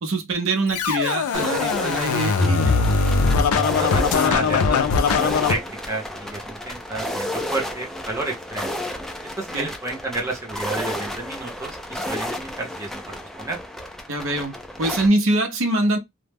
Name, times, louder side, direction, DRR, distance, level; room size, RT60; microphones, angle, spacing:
voice 1, 0.0-2.7 9.5-9.7 14.1-16.0, right 2 dB, 65° right, 0.6 m, -23 dB
Scratching (performance technique), 0.7-5.5, left 5 dB, 90° left, 0.4 m, -21 dB
sound 1, 1.3-15.1, left 1 dB, ahead, 0.3 m, -32 dB
sound 2, 2.3-7.2 7.7-7.8, equal, 40° left, 0.7 m, -31 dB
voice 2, 3.7-8.7 9.4-13.6, right 2 dB, 15° right, 0.7 m, -31 dB
2.1 x 2.0 x 3.2 m
head